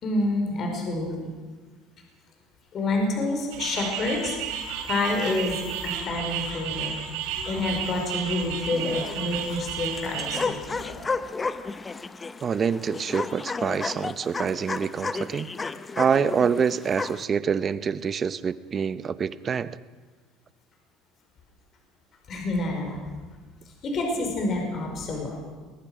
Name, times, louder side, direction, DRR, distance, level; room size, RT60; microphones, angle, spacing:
voice 1, 0.0-1.1 2.7-4.3 4.9-6.9 7.4-10.8 22.3-23.0 23.8-25.4, left 2 dB, 40° left, 2 dB, 5.2 m, -28 dB
sound 1, 3.5-10.4, right 8 dB, 90° right, 3.6 m, -33 dB
sound 2, 8.6-17.3, left 4 dB, 20° left, 0.7 m, -33 dB
voice 2, 12.4-15.5 16.0-19.8, right 6 dB, 30° right, 15 dB, 0.8 m, -26 dB
21.5 x 20.0 x 6.2 m, 1.4 s
cardioid pair, 135°, 0 cm